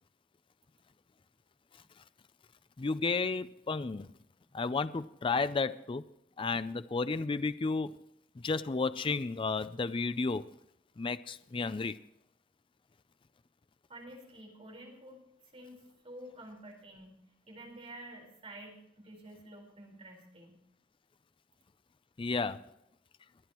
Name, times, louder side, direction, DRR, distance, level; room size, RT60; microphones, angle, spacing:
voice 1, 2.8-4.1 4.5-6.1 6.4-8.0 8.4-10.5 11.0-12.0 22.2-22.6, left 4 dB, 30° left, 13 dB, 0.4 m, -32 dB
voice 2, 13.9-15.2 15.5-17.1 17.5-20.6, right 1 dB, 35° right, 0 dB, 4.4 m, -50 dB
24.0 x 9.4 x 3.0 m, 0.78 s
head